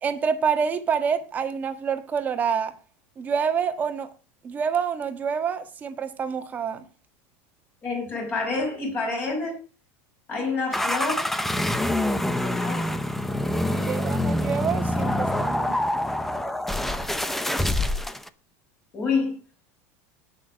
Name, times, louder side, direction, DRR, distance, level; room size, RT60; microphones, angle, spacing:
voice 1, 0.0-2.7 3.2-4.1 4.4-6.8 13.9-15.8, right 6 dB, 20° right, 1.6 m, -27 dB
voice 2, 7.8-9.6 10.3-11.3 12.3-13.0 13.6-14.2 18.9-19.4, left 4 dB, 25° left, 6.2 m, -29 dB
sound 1, 10.7-18.3, left 1 dB, 5° left, 0.7 m, -26 dB
19.0 x 6.4 x 5.1 m
supercardioid pair, 165°, 8 cm